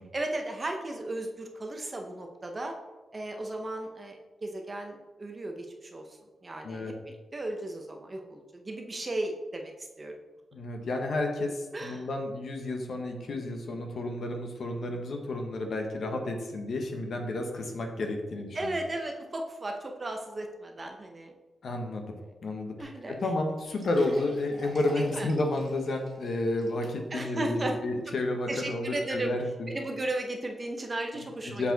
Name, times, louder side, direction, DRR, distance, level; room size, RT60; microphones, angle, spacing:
voice 1, 0.1-2.7 3.1-6.0 6.4-10.1 11.7-12.1 18.5-21.3 22.3-22.4 22.8-23.2 25.0-25.3 27.1-27.8 28.1-28.2 28.5-29.4 29.7-31.7, right 2 dB, 25° right, 3 dB, 0.7 m, -35 dB
voice 2, 6.6-6.9 10.5-18.8 21.6-22.1 22.4-22.8 23.1-29.7 31.4-31.7, left 2 dB, 55° left, 4 dB, 1.0 m, -31 dB
sound 1, 23.2-23.3 23.7-27.3 27.7-27.8 28.4-28.5, right 2 dB, 50° right, 1.8 m, -49 dB
6.9 x 4.6 x 3.9 m, 1.1 s
wide cardioid pair, 155°, 0 cm